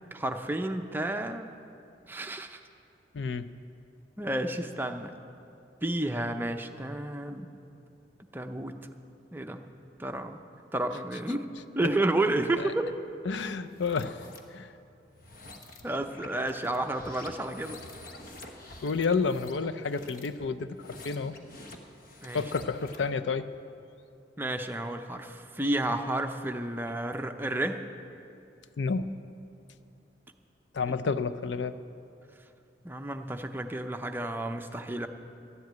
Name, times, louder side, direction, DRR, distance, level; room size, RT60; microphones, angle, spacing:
voice 1, 0.1-1.5 2.1-2.6 4.2-5.1 5.8-7.5 8.3-8.7 9.3-9.6 10.0-10.4 10.7-11.4 11.8-12.9 15.8-17.8 22.2-22.4 24.4-27.8 30.9-31.0 32.8-35.1, right 1 dB, 10° right, 5 dB, 0.5 m, -31 dB
voice 2, 3.1-3.5 11.8-11.9 12.6-12.7 13.3-14.2 14.5-14.7 18.8-21.3 22.3-23.5 28.8-29.2 30.7-31.8, left 4 dB, 75° left, 11 dB, 0.5 m, -30 dB
sound 1, 13.7-14.4 15.1-23.1, left 2 dB, 50° left, 1.2 m, -48 dB
13.0 x 7.8 x 9.3 m, 2.6 s
head